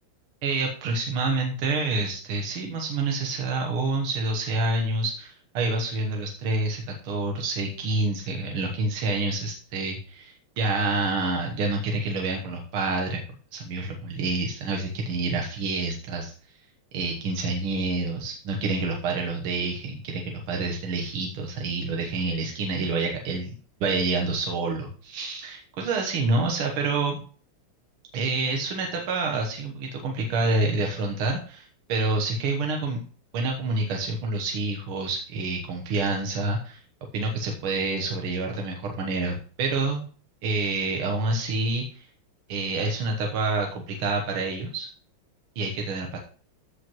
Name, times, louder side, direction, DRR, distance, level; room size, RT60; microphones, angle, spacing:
voice 1, 0.4-13.2 13.5-16.3 16.9-23.5 23.8-27.2 28.1-33.0 33.3-36.8 37.1-40.1 40.4-42.1 42.5-44.9 45.6-46.2, right 3 dB, 75° right, 2 dB, 2.0 m, -27 dB
14.5 x 5.1 x 3.1 m, 0.41 s
omnidirectional pair, 2.4 m